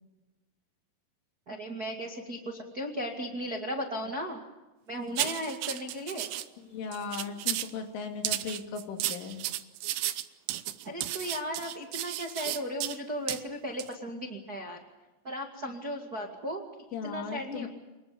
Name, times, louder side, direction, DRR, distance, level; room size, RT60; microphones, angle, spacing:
voice 1, 1.5-4.4 4.9-6.3 10.8-14.8 15.2-17.7, equal, 50° right, 1 dB, 1.0 m, -36 dB
sound 1, 5.2-6.5 6.9-7.7 8.2-13.0 13.3-13.4 13.8-13.9, right 14 dB, 75° right, 3.0 m, -33 dB
voice 2, 6.7-9.4 16.9-17.7, left 5 dB, 75° left, 4 dB, 4.8 m, -37 dB
26.5 x 21.0 x 7.0 m, 1.1 s
omnidirectional pair, 5.7 m